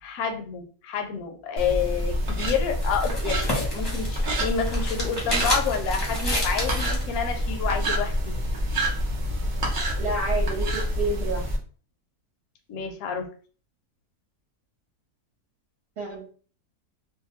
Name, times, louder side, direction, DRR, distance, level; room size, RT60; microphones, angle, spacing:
voice 1, 0.0-8.4 12.7-13.3, left 6 dB, 70° left, 4 dB, 1.0 m, -29 dB
sound 1, 1.6-11.6, equal, 75° right, 0.4 m, -27 dB
sound 2, 2.4-7.1, equal, 20° left, 0.7 m, -31 dB
voice 2, 10.0-11.4 16.0-16.3, right 2 dB, 50° right, -3 dB, 1.0 m, -29 dB
2.7 x 2.1 x 2.9 m, 0.41 s
omnidirectional pair, 1.7 m